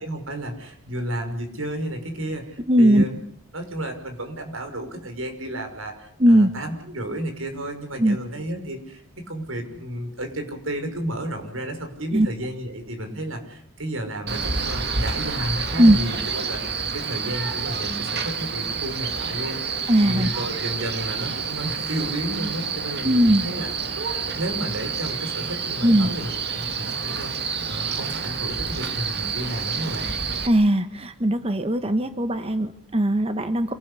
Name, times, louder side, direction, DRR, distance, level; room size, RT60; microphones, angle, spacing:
voice 1, 0.0-3.2 3.5-24.0 24.3-30.1, right 1 dB, 85° right, 5 dB, 6.0 m, -32 dB
voice 2, 2.7-3.0 6.2-6.5 8.0-8.2 12.1-12.3 15.8-16.0 19.9-20.5 23.0-23.4 25.8-26.1 30.4-33.7, right 1 dB, 30° right, 9 dB, 1.2 m, -19 dB
Male speech man speaking, 14.3-30.5, right 5 dB, 50° right, 2.2 m, -29 dB
27.0 x 18.5 x 8.4 m, 0.63 s
head